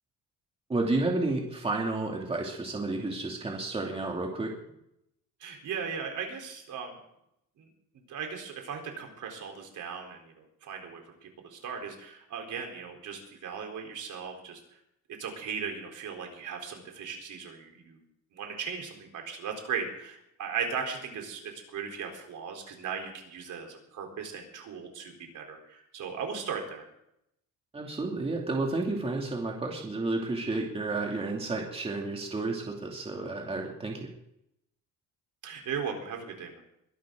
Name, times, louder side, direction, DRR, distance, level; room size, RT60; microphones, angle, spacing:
voice 1, 0.7-4.5 27.7-34.1, right 2 dB, 15° right, 0 dB, 2.7 m, -31 dB
voice 2, 5.4-7.0 7.6-7.7 7.9-14.6 15.2-18.0 18.3-26.8 35.4-36.6, right 6 dB, 60° right, 2 dB, 4.0 m, -37 dB
22.5 x 12.0 x 3.9 m, 0.78 s
cardioid pair, 150°, 34 cm